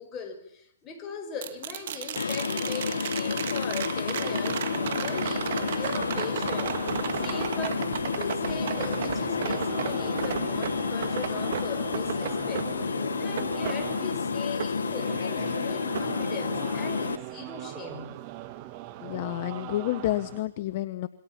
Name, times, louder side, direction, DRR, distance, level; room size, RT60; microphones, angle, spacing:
voice 1, 0.0-4.6 5.0-6.8 7.2-12.7 13.2-18.2, left 5 dB, 20° left, 5.1 m, -39 dB
sound 1, 1.4-15.5 15.9-17.0 19.2-19.3, right 10 dB, 55° right, 1.9 m, -36 dB
sound 2, 2.2-17.2, left 5 dB, 85° left, 1.3 m, -30 dB
sound 3, 4.2-20.4, right 15 dB, 35° right, 1.8 m, -41 dB
voice 2, 19.0-21.1, left 15 dB, 40° left, 1.0 m, -29 dB
27.0 x 24.0 x 5.9 m
hypercardioid pair, 145°, 0 cm